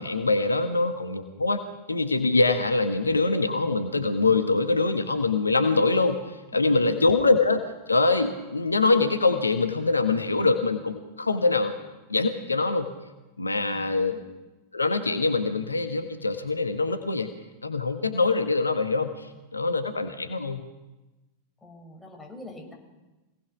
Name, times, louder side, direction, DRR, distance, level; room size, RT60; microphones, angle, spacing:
voice 1, 0.0-6.2 6.5-7.6 7.9-11.7 12.1-12.9 13.4-14.2 14.7-17.3 17.6-19.3 19.5-20.6, left 3 dB, 80° left, 8 dB, 1.4 m, -24 dB
voice 2, 13.7-14.2 21.6-22.7, left 2 dB, 10° left, 0 dB, 7.1 m, -45 dB
25.0 x 18.5 x 6.1 m, 1.1 s
figure-of-eight pair, 90°, 0 cm